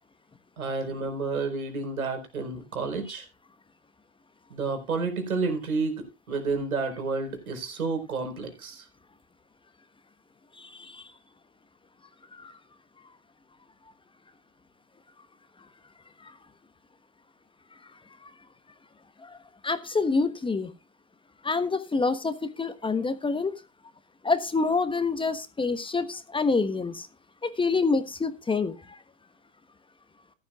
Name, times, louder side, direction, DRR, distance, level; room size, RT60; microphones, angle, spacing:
voice 1, 0.6-3.3 4.5-8.9, right 4 dB, 85° right, 6 dB, 4.6 m, -30 dB
voice 2, 10.6-11.0 12.3-12.5 16.2-16.3 19.2-19.4 19.6-20.7 21.4-23.5 24.2-27.1 27.4-29.0, left 4 dB, 10° left, 12 dB, 1.2 m, -27 dB
14.5 x 12.5 x 2.4 m, 0.26 s
hypercardioid pair, 95°, 41 cm